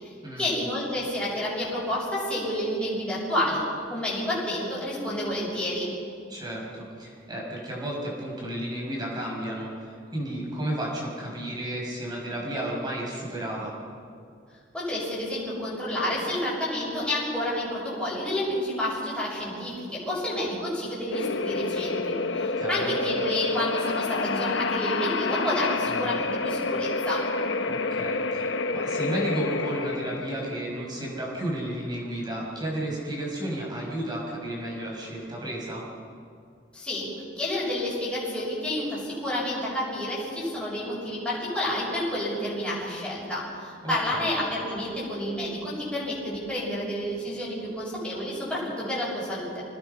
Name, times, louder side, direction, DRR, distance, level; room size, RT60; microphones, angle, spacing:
voice 1, 0.0-5.9 14.7-27.2 36.7-37.1 37.4-49.6, left 1 dB, 5° left, -8 dB, 6.8 m, -29 dB
voice 2, 6.3-13.7 22.6-23.0 25.9-26.1 27.6-35.8 43.8-44.3, right 1 dB, 20° right, -3 dB, 6.2 m, -33 dB
sound 1, 21.1-35.7, left 3 dB, 70° left, 0.9 m, -29 dB
26.0 x 19.5 x 5.8 m, 2.3 s
head